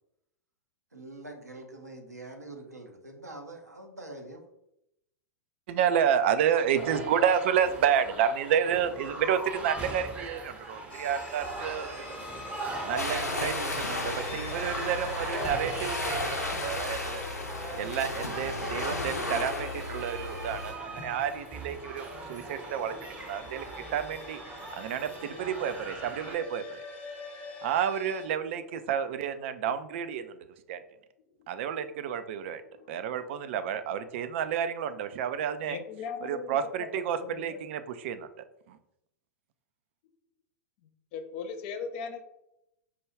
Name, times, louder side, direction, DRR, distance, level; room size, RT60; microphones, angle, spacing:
voice 1, 0.9-4.4, right 2 dB, 85° right, 2 dB, 0.7 m, -44 dB
voice 2, 5.7-12.3 12.9-17.2 17.7-22.9 23.2-23.6 23.9-24.4 24.7-26.8 27.6-30.3 30.7-30.8 31.5-32.6 32.9-35.8 36.3-38.3 38.7-38.8, right 8 dB, 45° right, 10 dB, 0.4 m, -30 dB
sound 1, 6.7-26.4, right 2 dB, 15° right, 0.7 m, -40 dB
sound 2, 10.9-28.3, left 3 dB, 15° left, 0.9 m, -46 dB
sound 3, 13.0-20.7, left 2 dB, 80° left, 0.6 m, -34 dB
voice 3, 32.6-33.2 35.6-37.6 40.8-42.2, left 6 dB, 40° left, 8 dB, 0.5 m, -40 dB
4.7 x 2.2 x 3.2 m, 0.81 s
figure-of-eight pair, 95°, 9 cm